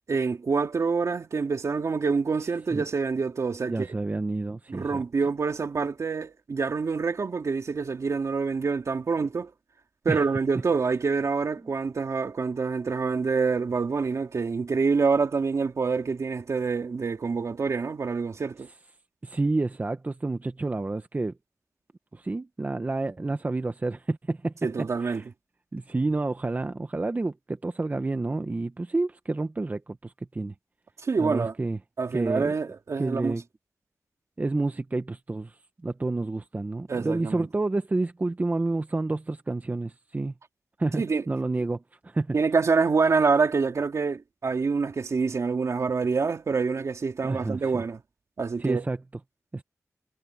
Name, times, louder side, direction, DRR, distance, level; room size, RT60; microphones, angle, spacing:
voice 1, 0.1-3.9 4.7-9.5 10.0-18.7 24.6-25.2 31.0-31.5 32.0-33.3 36.9-37.5 41.0-41.2 42.3-48.0 48.4-48.8, right 4 dB, 65° right, 3.1 m, -26 dB
voice 2, 3.7-5.0 10.1-10.2 19.2-21.3 22.1-25.3 25.7-30.5 31.2-31.8 32.1-32.5 33.0-33.4 34.4-40.3 40.8-42.3 47.2-47.8 48.6-49.0 49.5-49.6, right 2 dB, 30° right, 0.9 m, -29 dB
wide cardioid pair, 100°, 5 cm